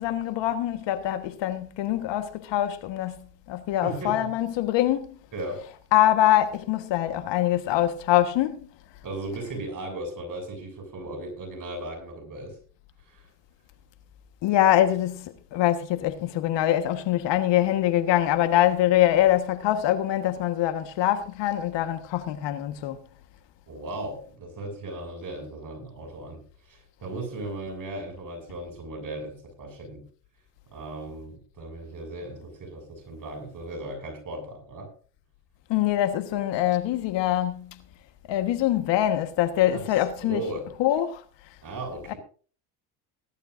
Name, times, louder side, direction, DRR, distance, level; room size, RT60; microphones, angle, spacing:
voice 1, 0.0-5.1 5.9-8.7 14.4-23.0 35.7-37.8 38.3-40.4 40.8-41.2 42.1-42.2, left 13 dB, 60° left, 1.5 m, -24 dB
voice 2, 3.8-4.2 5.3-5.6 9.0-12.6 13.1-13.3 23.7-26.4 26.7-30.0 30.7-34.9 39.7-39.8 40.2-40.7 41.6-42.2, right 2 dB, 40° right, 7.1 m, -36 dB
19.0 x 11.5 x 2.6 m
hypercardioid pair, 75°, 50 cm